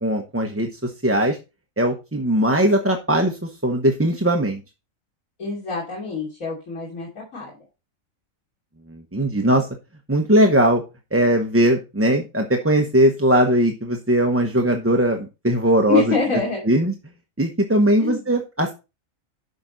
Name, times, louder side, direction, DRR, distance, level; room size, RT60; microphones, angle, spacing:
voice 1, 0.0-1.4 1.8-4.6 8.9-9.7 10.1-10.8 11.1-16.0 16.7-16.9 17.4-18.7, right 1 dB, 10° right, 3 dB, 0.8 m, -19 dB
voice 2, 5.4-7.5 15.9-16.6 18.0-18.3, left 5 dB, 75° left, -4 dB, 3.3 m, -25 dB
10.5 x 6.0 x 3.9 m, 0.28 s
omnidirectional pair, 1.4 m